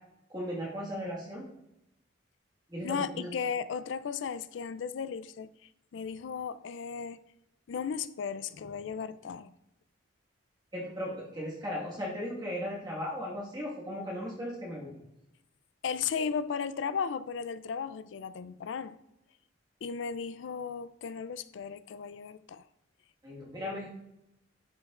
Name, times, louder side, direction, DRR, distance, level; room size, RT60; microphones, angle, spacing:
voice 1, 0.3-1.5 2.7-3.3 10.7-15.0 23.2-23.9, equal, 20° right, 1.6 m, -37 dB
voice 2, 2.8-5.5 5.9-7.2 7.7-9.5 15.8-19.0 19.8-22.6, left 6 dB, 70° left, 0.4 m, -35 dB
11.5 x 5.2 x 2.5 m
head